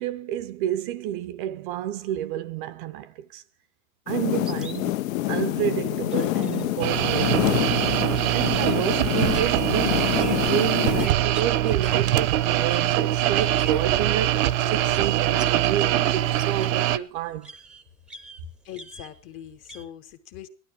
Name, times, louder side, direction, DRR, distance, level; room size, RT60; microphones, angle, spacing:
voice 1, 0.0-3.4 4.1-5.0 5.3-7.7 8.3-17.5, right 11 dB, 40° right, 0.6 m, -30 dB
sound 1, 4.1-11.1, left 16 dB, 70° left, 0.8 m, -27 dB
sound 2, 4.4-15.8 16.1-19.8, right 2 dB, ahead, 0.7 m, -45 dB
sound 3, 6.8-17.0, right 13 dB, 70° right, 0.9 m, -23 dB
voice 2, 18.6-20.5, left 11 dB, 30° left, 0.9 m, -41 dB
16.0 x 12.0 x 4.6 m
supercardioid pair, 155°, 42 cm